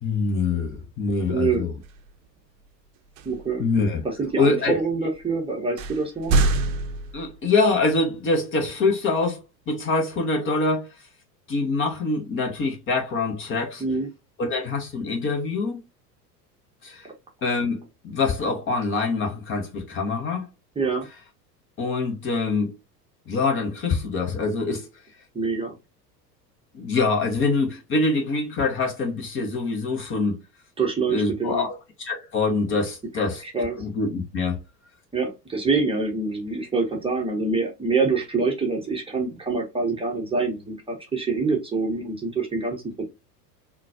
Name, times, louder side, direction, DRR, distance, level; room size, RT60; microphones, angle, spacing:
voice 1, 0.0-1.7 3.6-4.0 4.4-4.8 7.1-10.9 11.5-13.8 14.4-15.8 16.8-17.1 17.4-20.5 21.8-22.7 23.3-24.9 26.7-30.4 31.1-33.4 33.8-34.6, left 3 dB, 25° left, 0.7 m, -25 dB
voice 2, 1.3-1.6 3.2-3.7 4.0-6.3 13.8-14.1 17.0-17.1 20.8-21.1 25.3-25.8 30.8-31.6 33.4-33.8 35.1-43.1, right 4 dB, 10° right, 0.7 m, -25 dB
sound 1, 1.8-2.1 3.2-3.6 4.2-4.3 5.2-5.3 5.8-7.7, right 2 dB, 50° right, 0.6 m, -25 dB
3.8 x 2.2 x 2.6 m
figure-of-eight pair, 80°, 49 cm